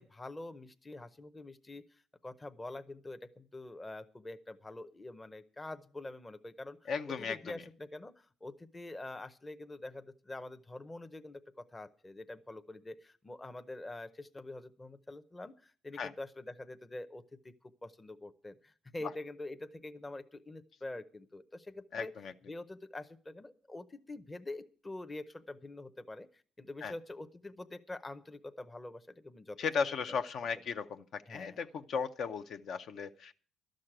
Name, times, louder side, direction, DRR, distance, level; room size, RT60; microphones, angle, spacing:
voice 1, 0.0-22.1 22.5-30.2 31.3-31.6, left 2 dB, 15° left, 10 dB, 0.7 m, -46 dB
voice 2, 6.9-7.4 16.0-16.1 21.9-22.3 26.8-26.9 29.6-33.3, left 6 dB, 55° left, 8 dB, 0.6 m, -36 dB
12.5 x 6.3 x 8.8 m, 0.44 s
cardioid pair, 125°, 0 cm